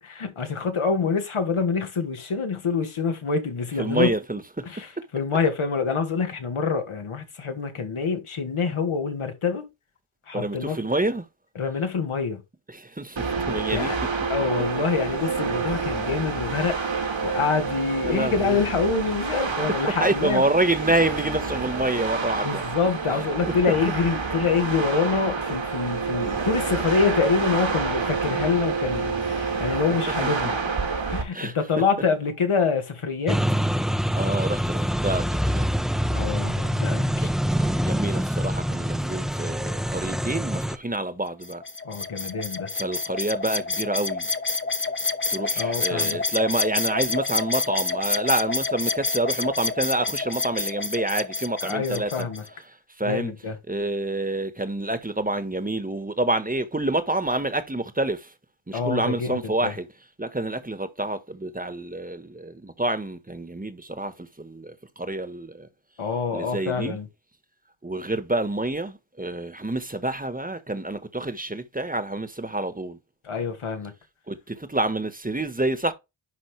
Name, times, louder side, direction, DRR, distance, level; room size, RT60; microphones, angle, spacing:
voice 1, 0.0-4.1 4.7-9.7 10.3-10.8 11.6-12.4 13.7-14.0 14.3-20.4 22.4-30.6 31.1-33.4 36.1-37.3 41.8-42.7 45.6-46.2 51.6-52.4 53.0-53.6 58.7-59.7 66.0-67.1 73.2-73.9, left 5 dB, 85° left, 2.1 m, -26 dB
voice 2, 3.8-4.4 10.3-11.2 12.7-13.9 18.0-18.6 20.0-22.6 30.2-30.3 31.3-31.5 34.1-35.7 37.2-41.6 42.8-44.3 45.3-52.3 53.0-53.3 53.7-58.3 58.7-59.9 60.2-65.7 66.3-67.0 67.8-73.0 74.3-75.9, right 2 dB, 15° right, 1.4 m, -27 dB
sound 1, 13.2-31.2, right 4 dB, 65° right, 2.4 m, -28 dB
sound 2, 33.3-40.8, equal, ahead, 0.8 m, -25 dB
sound 3, 41.4-52.5, left 3 dB, 25° left, 1.1 m, -28 dB
11.0 x 3.8 x 3.3 m
cardioid pair, 45°, 48 cm